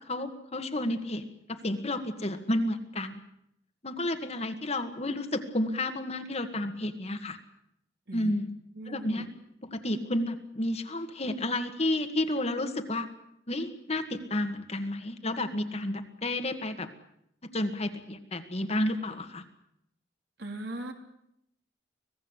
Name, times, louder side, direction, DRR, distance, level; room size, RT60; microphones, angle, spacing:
voice 1, 0.1-3.2 3.8-7.4 8.1-8.5 8.9-9.3 9.6-13.1 13.5-16.9 17.4-19.4, left 1 dB, 35° left, 7 dB, 1.9 m, -31 dB
voice 2, 8.7-9.2 20.4-20.9, right 2 dB, 60° right, 4 dB, 3.3 m, -39 dB
25.5 x 18.0 x 8.2 m, 0.78 s
head